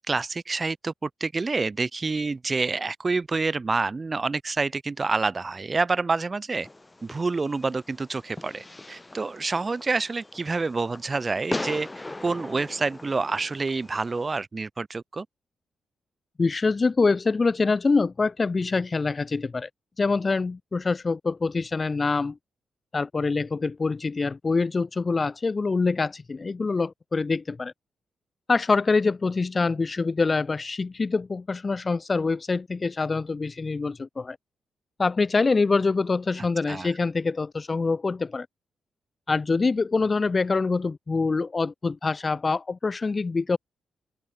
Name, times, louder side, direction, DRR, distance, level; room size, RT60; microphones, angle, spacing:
voice 1, 0.0-6.7 7.0-11.9 12.2-15.3 36.4-36.9, right 3 dB, 35° right, 0.7 m, -28 dB
Fireworks, 6.6-14.4, left 2 dB, 20° left, 1.0 m, -39 dB
voice 2, 16.4-19.7 20.0-22.4 22.9-27.7 28.5-34.4 35.0-38.5 39.3-43.6, left 4 dB, 40° left, 0.3 m, -25 dB
open air
supercardioid pair, 55°, 0 cm